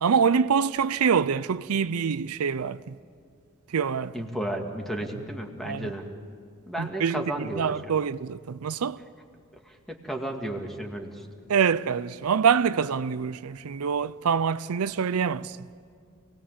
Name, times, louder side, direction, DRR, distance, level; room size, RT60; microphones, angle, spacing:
voice 1, 0.0-2.9 3.7-4.1 5.7-5.9 6.8-7.2 7.6-9.0 11.5-15.6, right 6 dB, 80° right, 0.5 m, -25 dB
voice 2, 4.1-6.1 6.7-7.9 9.0-9.1 9.6-11.3, right 1 dB, ahead, 2.1 m, -33 dB
28.5 x 19.5 x 7.4 m
head